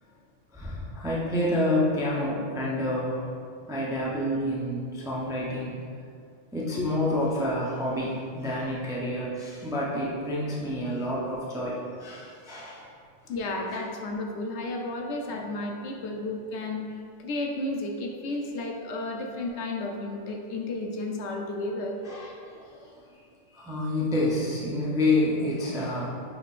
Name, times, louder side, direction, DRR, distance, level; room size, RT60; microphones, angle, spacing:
voice 1, 0.5-3.3 3.7-5.8 6.5-12.9 22.0-23.2 23.5-26.2, left 1 dB, 5° right, -6 dB, 0.4 m, -28 dB
voice 2, 13.3-16.8 17.2-22.0, left 2 dB, 75° left, 2 dB, 0.9 m, -32 dB
5.7 x 3.6 x 2.4 m, 2.2 s
omnidirectional pair, 1.2 m